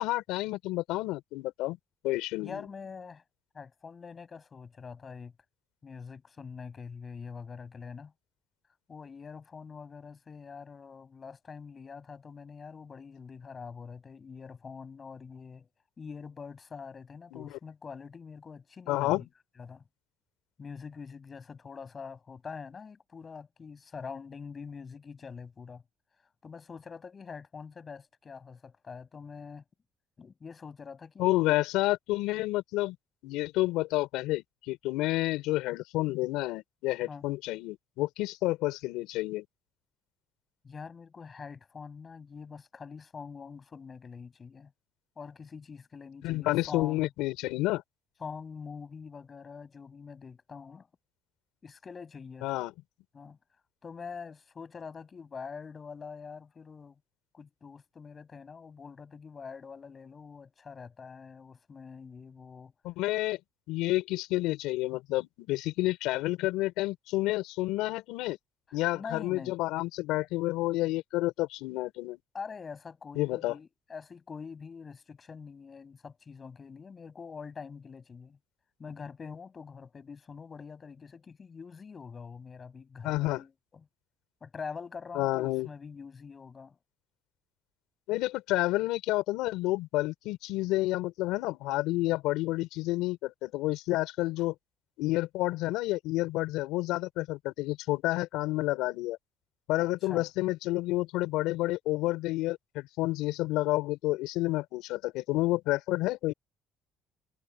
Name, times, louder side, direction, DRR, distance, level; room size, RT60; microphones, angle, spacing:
voice 1, 0.0-1.8 2.0-2.5 17.3-17.5 18.9-19.2 31.2-33.0 33.2-39.4 46.2-47.8 52.4-52.7 62.8-63.4 63.7-68.4 68.7-72.2 73.1-73.5 83.0-83.4 85.1-85.7 88.1-94.5 95.0-99.2 99.7-106.3, left 18 dB, 80° left, 4.9 m, -30 dB
voice 2, 2.4-3.2 3.5-5.3 5.8-8.1 8.9-15.7 16.0-19.3 19.6-19.8 20.6-25.8 26.4-29.6 30.2-31.6 37.1-37.2 40.6-44.7 45.2-47.1 48.2-50.9 51.6-52.5 53.1-53.4 53.8-57.0 57.3-62.7 68.7-69.6 72.3-78.4 78.8-83.8 84.4-86.8 99.8-100.3, left 5 dB, 25° left, 7.9 m, -45 dB
cardioid pair, 150°, 0 cm